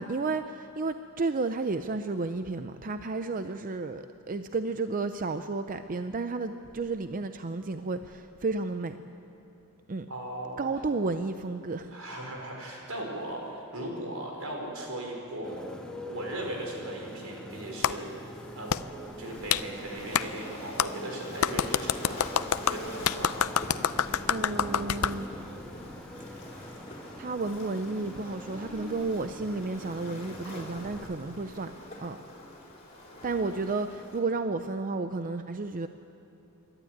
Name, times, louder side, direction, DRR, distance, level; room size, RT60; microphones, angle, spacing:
voice 1, 0.0-9.0 9.9-10.1 10.6-11.9 24.3-25.4 27.2-31.7 32.0-32.2 33.2-35.9, right 3 dB, 40° right, 9 dB, 0.5 m, -32 dB
voice 2, 10.1-10.7 11.9-15.6 16.1-18.1 18.5-18.7 19.2-22.3 22.6-23.5, right 1 dB, 85° right, 0 dB, 5.1 m, -38 dB
Motorcycle, 15.4-31.1, equal, 5° left, 1.6 m, -44 dB
Clapping, 17.8-17.9 18.7-18.8 19.5-19.6 20.1-20.3 20.8-20.9 21.4-25.2, left 8 dB, 80° left, 0.5 m, -26 dB
Waves surf, 19.3-34.2, left 1 dB, 30° left, 4.6 m, -45 dB
27.0 x 12.0 x 9.4 m, 3.0 s
head